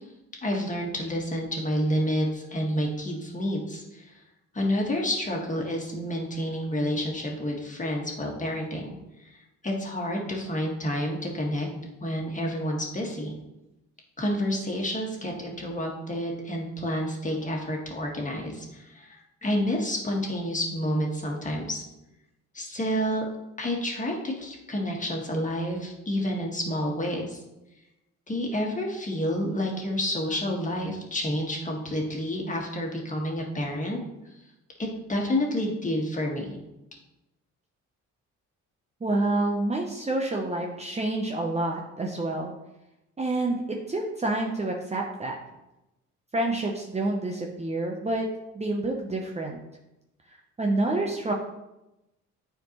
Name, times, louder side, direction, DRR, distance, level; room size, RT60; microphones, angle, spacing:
voice 1, 0.4-4.1 4.5-9.0 9.6-11.7 12.0-13.3 14.2-21.8 22.5-23.2 23.6-27.4 28.3-34.0 34.8-36.6, equal, 25° left, 0 dB, 1.7 m, -29 dB
voice 2, 39.0-42.5 43.2-45.3 46.3-48.3 48.5-49.6 50.6-51.3, right 2 dB, 20° right, 0 dB, 0.8 m, -28 dB
9.1 x 4.5 x 3.1 m, 0.93 s
cardioid pair, 90°, 30 cm